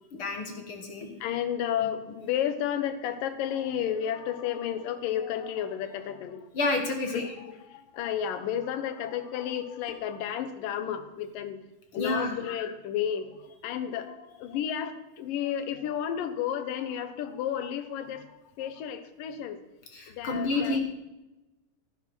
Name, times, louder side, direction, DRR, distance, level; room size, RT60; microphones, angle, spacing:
voice 1, 0.1-1.1 1.8-1.9 6.5-7.3 11.9-12.5 19.9-20.8, left 3 dB, 50° left, 4 dB, 1.7 m, -30 dB
voice 2, 1.2-6.5 7.1-11.6 11.9-19.6 20.1-20.8, left 9 dB, 70° left, 11 dB, 2.6 m, -32 dB
15.0 x 10.5 x 6.2 m, 1.0 s
omnidirectional pair, 4.3 m